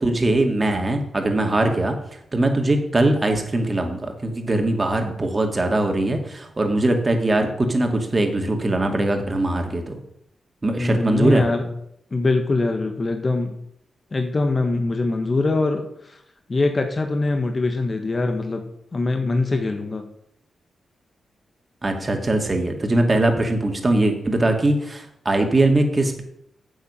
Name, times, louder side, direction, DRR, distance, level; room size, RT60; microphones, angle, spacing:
voice 1, 0.0-2.0 2.3-10.0 10.6-11.4 21.8-26.2, right 2 dB, 35° right, 4 dB, 2.3 m, -21 dB
voice 2, 10.8-11.7 12.1-13.6 14.1-16.2 16.5-18.7 18.9-20.0, left 2 dB, 40° left, 5 dB, 1.4 m, -23 dB
9.7 x 7.1 x 5.7 m, 0.74 s
cardioid pair, 55°, 0 cm